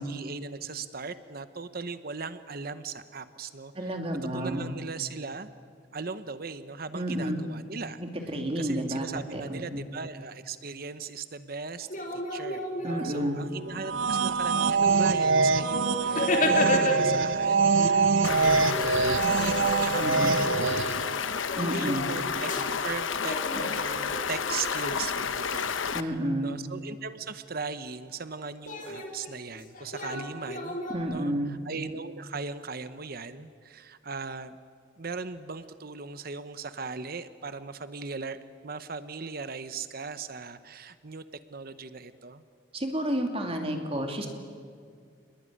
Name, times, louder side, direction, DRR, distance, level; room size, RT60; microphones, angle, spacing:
voice 1, 0.0-4.0 4.3-5.5 5.9-8.0 8.6-21.2 21.6-22.5 22.8-30.8 31.0-34.6 35.0-38.4 38.6-41.2 41.5-42.4, right 4 dB, 50° right, 12 dB, 0.9 m, -38 dB
voice 2, 3.7-4.6 6.9-7.4 8.0-9.8 12.8-13.4 20.0-20.3 21.6-22.0 25.9-26.5 30.9-31.6 42.7-44.3, equal, 30° right, 3 dB, 2.8 m, -30 dB
sound 1, 11.8-13.6 14.3-14.4 14.8-17.2 17.6-22.9 23.2-25.5 28.7-31.0, left 2 dB, 45° left, 3.4 m, -33 dB
sound 2, 13.7-21.1, right 4 dB, 75° right, 0.7 m, -24 dB
Stream, 18.2-26.0, left 6 dB, 80° left, 1.0 m, -31 dB
28.5 x 20.5 x 10.0 m, 2.1 s
head